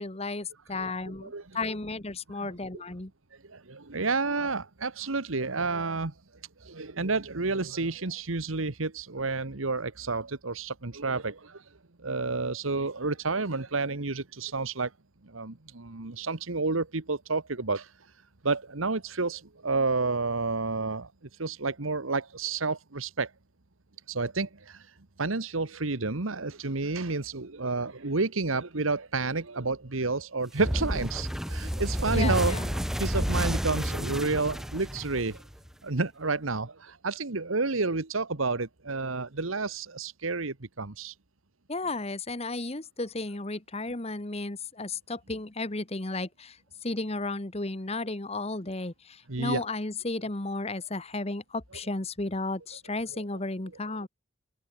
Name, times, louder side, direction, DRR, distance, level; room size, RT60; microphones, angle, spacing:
voice 1, 0.0-3.1 32.1-32.7 41.7-46.6 46.8-54.1, left 2 dB, 30° left, 1.4 m, -34 dB
voice 2, 3.5-6.1 6.6-11.6 12.0-14.9 15.2-17.9 18.4-21.1 21.4-23.3 24.1-35.4 35.8-41.1 49.3-49.6 53.1-53.2, right 3 dB, 85° right, 1.5 m, -30 dB
sound 1, 30.6-35.7, equal, ahead, 0.9 m, -30 dB
head